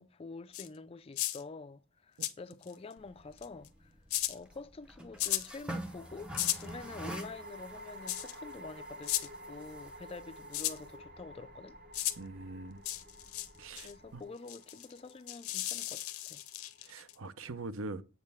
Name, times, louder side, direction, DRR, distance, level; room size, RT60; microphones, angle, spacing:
voice 1, 0.0-3.9 4.3-11.8 13.8-16.4, left 3 dB, 25° left, 0.3 m, -47 dB
sound 1, 0.5-0.7 1.2-1.4 2.2-2.7 3.4-3.7 4.1-4.4 5.2-5.5 6.3-6.7 8.1-8.4 9.0-9.3 10.5-10.8 11.9-12.2 12.9-13.5 13.8-13.9 14.5-17.2, left 14 dB, 80° left, 0.7 m, -35 dB
sound 2, 2.7-3.4 5.8-17.2, equal, 45° right, 0.9 m, -52 dB
sound 3, 3.0-14.2, right 1 dB, 5° right, 0.7 m, -48 dB
voice 2, 12.2-12.8 13.6-14.2 16.8-18.0, right 3 dB, 65° right, 0.7 m, -43 dB
8.0 x 6.5 x 3.5 m
head